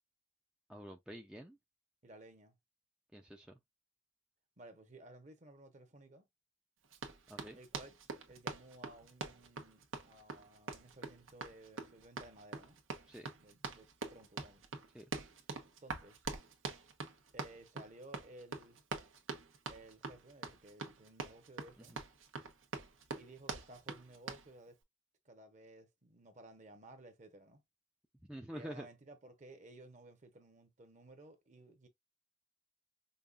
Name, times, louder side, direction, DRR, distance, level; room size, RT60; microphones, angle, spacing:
voice 1, 0.7-1.6 3.1-3.6 7.3-7.6 13.1-13.3 14.9-15.1 28.3-28.9, equal, 5° right, 0.4 m, -47 dB
voice 2, 2.0-2.6 4.6-6.3 7.5-8.0 8.3-12.8 13.4-14.6 15.8-16.2 17.3-18.8 19.7-22.0 23.2-24.8 25.2-27.6 28.5-31.9, right 1 dB, 35° right, 0.9 m, -56 dB
Run, 6.9-24.5, right 4 dB, 85° right, 1.0 m, -44 dB
5.4 x 2.4 x 2.4 m
head